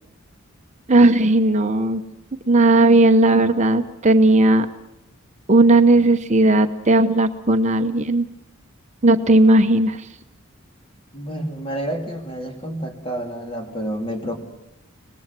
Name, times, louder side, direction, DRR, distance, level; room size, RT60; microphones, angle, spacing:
voice 1, 0.9-2.0 2.5-4.7 5.5-8.3 9.0-10.1, right 2 dB, 35° right, 7 dB, 0.8 m, -16 dB
voice 2, 11.1-14.4, right 1 dB, 25° left, 3 dB, 3.4 m, -29 dB
25.0 x 19.5 x 7.5 m, 0.88 s
head